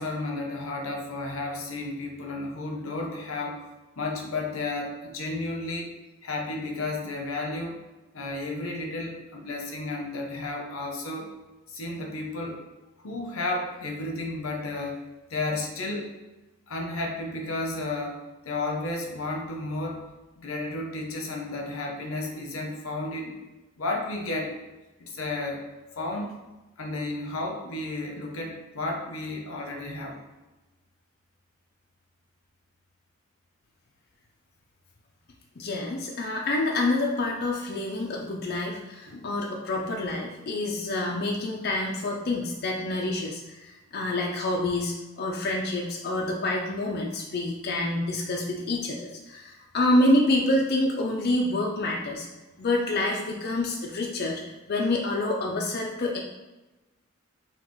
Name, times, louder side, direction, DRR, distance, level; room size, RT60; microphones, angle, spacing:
voice 1, 0.0-3.6 4.0-5.9 6.2-7.8 8.1-11.3 11.7-12.6 13.0-15.0 15.3-16.1 16.7-20.1 20.4-23.3 23.8-24.6 25.0-25.6 26.0-26.3 26.8-30.2 39.1-39.3, left 2 dB, 85° left, 1 dB, 0.8 m, -32 dB
voice 2, 35.6-52.3 52.6-54.4 54.7-56.2, left 2 dB, 50° left, -1 dB, 0.5 m, -27 dB
5.6 x 2.3 x 3.1 m, 1.1 s
head